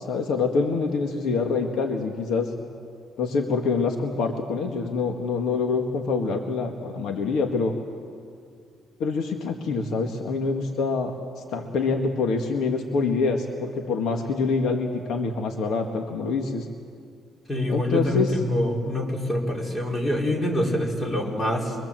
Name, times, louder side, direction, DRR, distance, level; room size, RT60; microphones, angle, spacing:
voice 1, 0.1-2.5 3.2-7.7 9.0-11.1 11.5-16.7 17.7-18.4, left 4 dB, 70° left, 3 dB, 1.9 m, -25 dB
voice 2, 17.5-21.8, left 1 dB, 20° left, -1 dB, 4.1 m, -25 dB
24.5 x 23.0 x 7.7 m, 2.2 s
cardioid pair, 145°, 0 cm